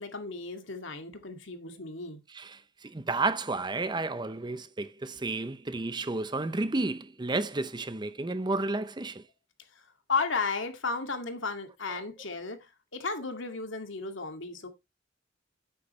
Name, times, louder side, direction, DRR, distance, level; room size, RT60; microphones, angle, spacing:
voice 1, 0.0-2.2 10.1-14.7, left 4 dB, 70° left, 2.2 m, -34 dB
voice 2, 2.3-9.2, right 2 dB, 20° right, 0.6 m, -32 dB
10.5 x 9.1 x 3.2 m
head